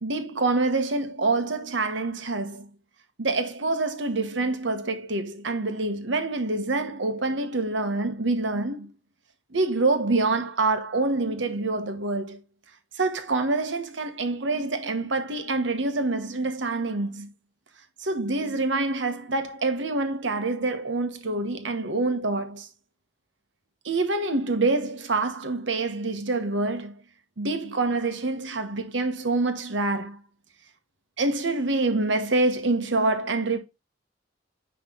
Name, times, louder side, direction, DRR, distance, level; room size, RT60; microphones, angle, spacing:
voice 1, 0.0-2.7 3.2-8.9 9.5-12.4 12.9-17.3 18.0-22.7 23.8-26.9 27.4-30.2 31.2-33.6, right 3 dB, 70° right, 1.2 m, -26 dB
9.8 x 3.3 x 3.8 m
head